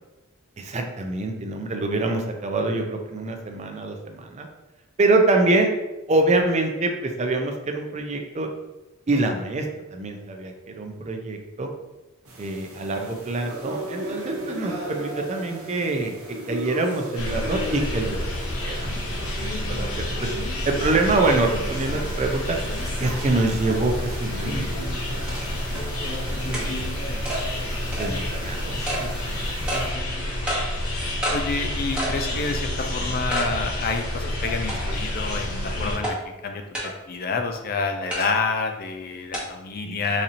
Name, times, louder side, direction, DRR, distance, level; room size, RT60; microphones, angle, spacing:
voice 1, 0.6-4.5 5.0-5.7 6.1-8.5 9.1-11.7 12.4-20.3 20.7-22.6 23.0-24.7 26.3-26.9 28.0-29.1 32.3-32.6 39.8-40.2, right 2 dB, 30° right, 4 dB, 0.4 m, -25 dB
sound 1, 12.2-29.9, right 1 dB, 75° right, 0.9 m, -38 dB
sound 2, 17.1-36.0, left 1 dB, 75° left, 0.8 m, -29 dB
sound 3, 24.6-24.7 25.3-25.4 25.8-25.9 26.5-26.7 27.3-27.4 27.9-28.1 28.9-29.0 29.7-29.9 30.5-30.6 31.2-31.4 32.0-32.2 32.6-32.7 33.3-33.5 34.0-34.1 34.7-35.1 36.0-36.1 36.7-36.9 38.1-38.3 39.3-39.4, equal, 5° right, 0.8 m, -28 dB
voice 2, 31.3-36.2 36.4-36.6 37.1-40.2, left 4 dB, 45° left, 5 dB, 0.4 m, -28 dB
4.1 x 2.8 x 2.5 m, 1.0 s
head